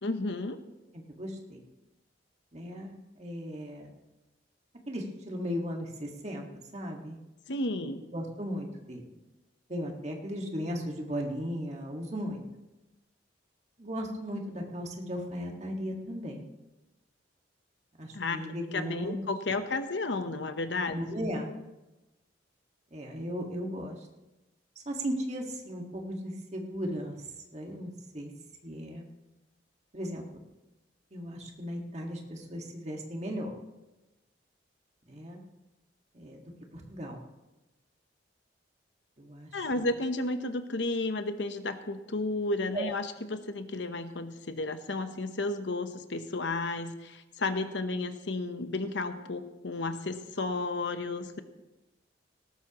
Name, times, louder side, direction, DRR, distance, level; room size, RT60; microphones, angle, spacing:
voice 1, 0.0-0.6 7.5-8.0 18.1-21.0 39.5-51.4, left 2 dB, 75° left, 9 dB, 0.9 m, -32 dB
voice 2, 0.9-1.6 2.5-3.9 4.9-6.5 6.7-7.2 8.1-9.0 9.7-12.4 13.8-16.5 18.0-19.2 20.9-21.5 22.9-24.1 24.8-27.2 27.5-28.3 28.6-29.1 29.9-30.4 31.1-33.5 35.1-35.4 36.1-37.2 39.2-39.9 42.7-42.9, equal, 35° right, 1 dB, 1.8 m, -36 dB
18.5 x 13.5 x 3.0 m, 1.0 s
head